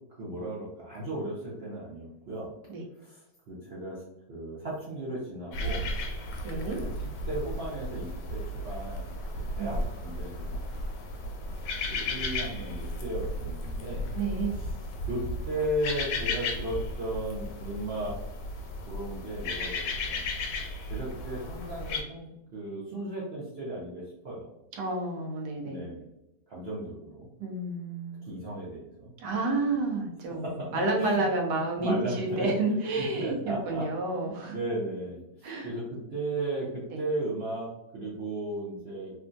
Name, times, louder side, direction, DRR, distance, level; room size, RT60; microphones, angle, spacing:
voice 1, 0.2-2.5 3.0-3.2 3.5-4.0 4.3-5.9 6.8-6.9 7.3-10.6 11.9-14.1 14.6-14.7 15.1-18.2 18.9-20.3 20.9-24.5 25.6-26.1 26.5-27.3 28.2-29.1 30.4-31.3 31.8-32.5 32.9-33.9 34.4-39.1, right 1 dB, 55° right, -7 dB, 0.7 m, -35 dB
sound 1, 5.5-22.0, left 1 dB, 85° left, 1.3 m, -34 dB
voice 2, 6.4-6.8 9.6-9.7 14.1-14.5 24.7-25.9 27.4-28.3 29.2-34.5 35.4-35.7 36.9-37.0, right 2 dB, 75° right, 0 dB, 1.3 m, -30 dB
3.4 x 2.3 x 2.5 m, 0.88 s
omnidirectional pair, 1.9 m